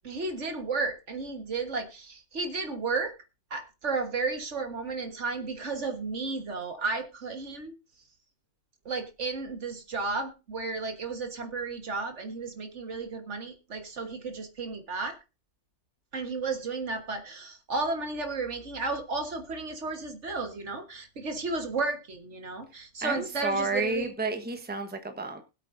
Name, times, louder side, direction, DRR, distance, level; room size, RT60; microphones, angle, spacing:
voice 1, 0.0-3.1 3.5-7.7 8.9-15.2 16.1-24.1, right 3 dB, 70° right, 5 dB, 1.8 m, -33 dB
voice 2, 23.0-25.4, right 3 dB, 10° right, 6 dB, 1.1 m, -31 dB
21.0 x 8.4 x 2.6 m, 0.29 s
omnidirectional pair, 1.3 m